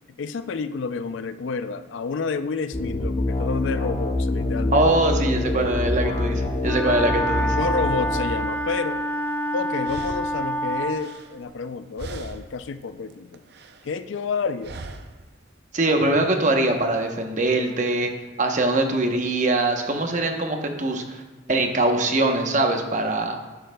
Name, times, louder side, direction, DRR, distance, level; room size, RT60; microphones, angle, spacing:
voice 1, 0.2-4.9 7.6-9.0 9.5-13.4 13.8-14.8, left 4 dB, 75° left, 12 dB, 0.4 m, -29 dB
sound 1, 2.7-8.2, left 2 dB, 35° left, 1.0 m, -25 dB
voice 2, 4.7-7.6 15.7-18.1 18.4-21.2 21.5-23.4, right 2 dB, 40° right, 3 dB, 0.9 m, -22 dB
Wind instrument woodwind instrument, 6.6-11.0, right 1 dB, 10° left, 0.5 m, -27 dB
sound 2, 9.3-9.4 9.8-11.7 12.0-12.7 13.0-13.9 14.6-15.3, right 3 dB, 55° right, 0.5 m, -40 dB
11.5 x 9.3 x 2.3 m, 1.2 s
head